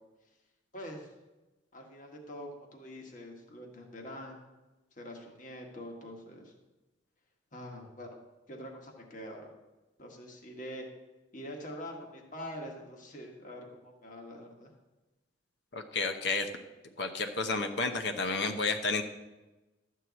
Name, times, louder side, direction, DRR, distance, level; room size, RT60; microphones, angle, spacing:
voice 1, 0.7-1.1 1.7-4.5 5.0-6.5 7.5-8.2 8.5-9.5 10.0-10.9 11.3-14.7, equal, 40° left, 1 dB, 1.6 m, -44 dB
voice 2, 15.7-16.5 17.0-19.0, left 3 dB, 60° left, 6 dB, 0.8 m, -31 dB
12.5 x 4.6 x 8.1 m, 1.1 s
head